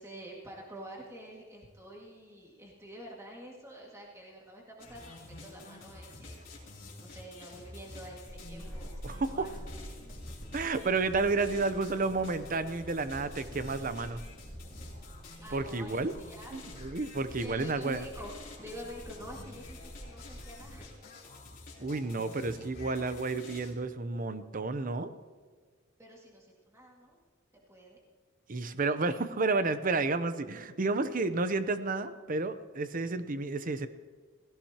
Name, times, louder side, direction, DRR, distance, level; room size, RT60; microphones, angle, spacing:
voice 1, 0.0-6.5 7.0-9.9 15.4-16.5 17.4-20.9 26.0-27.2 27.7-28.0, right 1 dB, 15° right, -3 dB, 2.0 m, -48 dB
sound 1, 4.8-23.7, left 2 dB, 45° left, 3.5 m, -49 dB
Walk footsteps / Squeak, 8.3-20.9, equal, 10° left, 4.0 m, -48 dB
voice 2, 9.0-9.5 10.5-14.2 15.5-16.1 16.5-18.1 21.8-25.1 28.5-33.9, right 3 dB, 45° right, 11 dB, 0.7 m, -31 dB
17.5 x 16.0 x 2.9 m, 1.5 s
head